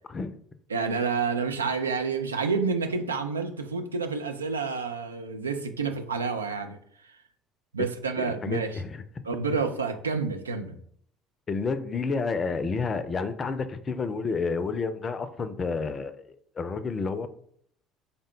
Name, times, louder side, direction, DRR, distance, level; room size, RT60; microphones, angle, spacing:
voice 1, 0.7-6.8 7.0-7.1 7.7-8.8 9.2-10.8, right 5 dB, 90° right, 0.3 m, -29 dB
voice 2, 8.2-9.0 11.5-16.1 16.6-17.3, left 4 dB, 35° left, 0.4 m, -30 dB
3.7 x 2.1 x 3.6 m
hypercardioid pair, 60°, 0 cm